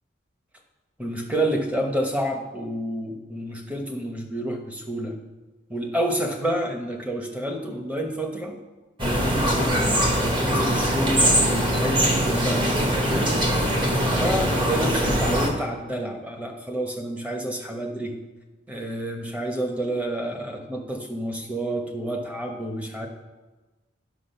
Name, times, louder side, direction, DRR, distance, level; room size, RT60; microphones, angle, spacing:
voice 1, 1.0-5.1 5.7-8.5 9.2-10.1 10.4-13.4 14.1-18.2 18.7-23.1, right 1 dB, 5° right, 2 dB, 1.0 m, -29 dB
sound 1, 9.0-15.5, equal, 25° right, 1.3 m, -22 dB
10.5 x 6.3 x 5.7 m, 1.2 s
head